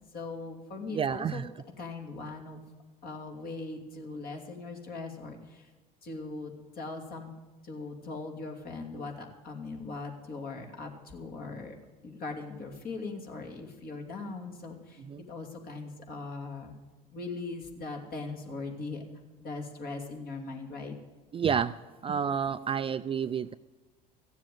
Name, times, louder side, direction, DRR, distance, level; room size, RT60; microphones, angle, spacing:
voice 1, 0.1-1.4 1.8-2.6 3.0-5.7 6.0-7.3 7.6-11.7 12.0-15.0 15.3-16.7 17.1-19.0 19.4-20.9, left 3 dB, 45° left, 3 dB, 2.8 m, -40 dB
voice 2, 0.9-1.5 15.0-15.3 21.3-21.8 22.0-23.5, right 7 dB, 25° right, 13 dB, 0.4 m, -30 dB
15.5 x 7.4 x 9.3 m, 1.2 s
hypercardioid pair, 65°, 21 cm